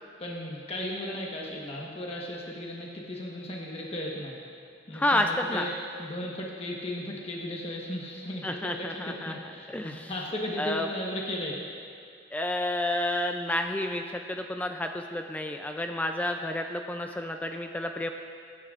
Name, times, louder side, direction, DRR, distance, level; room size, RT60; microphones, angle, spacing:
voice 1, 0.2-4.4 4.9-5.7 6.0-11.7, left 1 dB, 30° left, -2 dB, 1.2 m, -36 dB
voice 2, 4.9-5.7 8.4-9.3 9.7-10.1 10.6-10.9 12.3-18.1, left 1 dB, 10° left, 4 dB, 0.3 m, -30 dB
21.0 x 9.8 x 2.5 m, 2.4 s
head